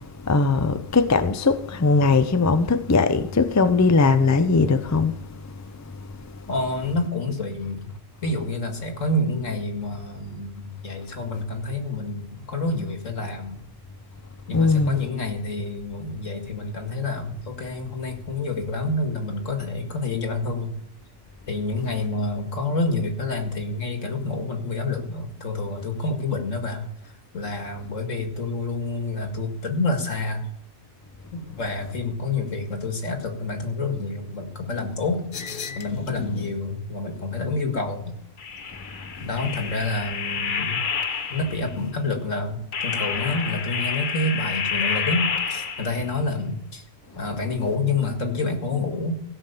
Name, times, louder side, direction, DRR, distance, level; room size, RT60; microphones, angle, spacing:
voice 1, 0.3-5.1 14.5-15.0, left 4 dB, 20° left, 0.4 m, -19 dB
voice 2, 6.5-7.9 8.2-13.6 14.5-20.7 21.5-26.9 27.3-30.5 31.3-38.1 39.2-40.8 41.3-46.8 47.2-49.1, left 2 dB, 75° left, 2.2 m, -28 dB
sound 1, 35.3-36.6 38.4-41.7 42.7-46.1, left 6 dB, 45° left, 0.9 m, -29 dB
16.5 x 6.0 x 6.9 m
omnidirectional pair, 1.3 m